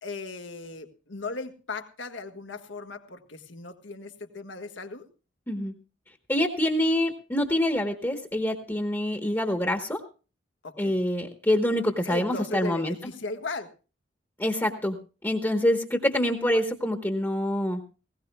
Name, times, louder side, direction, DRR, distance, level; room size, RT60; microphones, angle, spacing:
voice 1, 0.0-5.0 10.6-10.9 12.0-13.7, left 3 dB, 85° left, 6 dB, 1.6 m, -37 dB
voice 2, 6.3-10.0 10.8-12.9 14.4-15.0 15.2-17.8, left 1 dB, 15° left, 5 dB, 1.0 m, -26 dB
19.5 x 17.0 x 2.3 m, 0.34 s
head